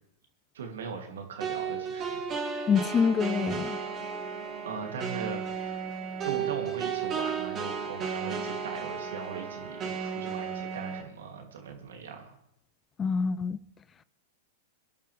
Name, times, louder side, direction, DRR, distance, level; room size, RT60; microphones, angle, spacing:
voice 1, 0.5-2.2 4.6-5.4 6.2-12.3, right 5 dB, 75° right, 2.9 m, -39 dB
sound 1, 1.4-11.0, right 6 dB, 30° right, 3.0 m, -34 dB
voice 2, 2.7-3.8 13.0-13.6, left 6 dB, 25° left, 0.5 m, -26 dB
23.0 x 11.0 x 3.5 m
hypercardioid pair, 105°, 0 cm